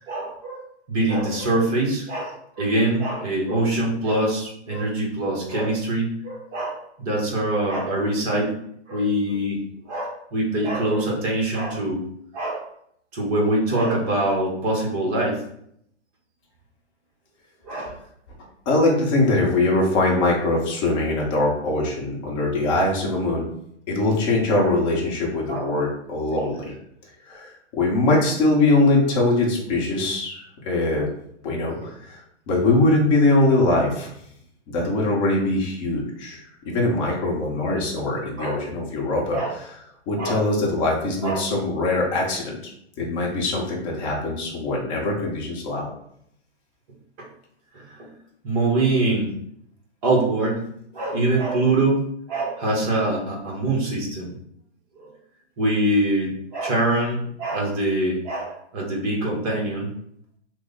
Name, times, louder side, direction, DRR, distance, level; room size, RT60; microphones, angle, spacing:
voice 1, 0.1-0.6 0.9-8.5 8.9-9.6 9.9-12.0 12.3-12.7 13.1-15.4 17.6-17.9 25.5-25.7 26.3-26.5 38.4-38.6 39.3-39.5 40.2-40.5 41.2-41.4 47.2-47.3 48.0-48.1 48.4-49.3 50.0-50.6 50.9-54.3 55.0-55.1 55.6-59.9, right 1 dB, 35° right, -2 dB, 0.9 m, -24 dB
voice 2, 18.7-23.5 23.9-26.7 27.3-31.1 31.4-32.2 32.5-34.1 34.7-39.4 40.1-42.6 43.0-45.9, left 2 dB, 25° left, -2 dB, 0.8 m, -22 dB
3.1 x 2.0 x 3.7 m, 0.70 s
hypercardioid pair, 145°, 35 cm